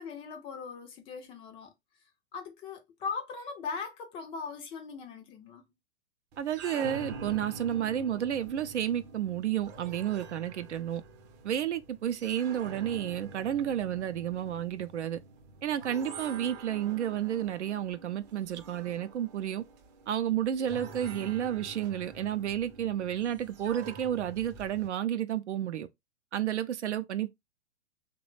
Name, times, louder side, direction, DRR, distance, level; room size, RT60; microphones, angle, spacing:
voice 1, 0.0-1.7 2.3-5.6 21.1-21.4, left 5 dB, 15° left, 0.4 m, -40 dB
sound 1, 6.3-24.9, right 4 dB, 40° right, 0.7 m, -46 dB
voice 2, 6.4-11.0 11.4-15.2 15.6-19.6 20.1-25.9 26.3-27.3, right 10 dB, 75° right, 0.6 m, -31 dB
3.1 x 2.2 x 3.0 m
hypercardioid pair, 115°, 35 cm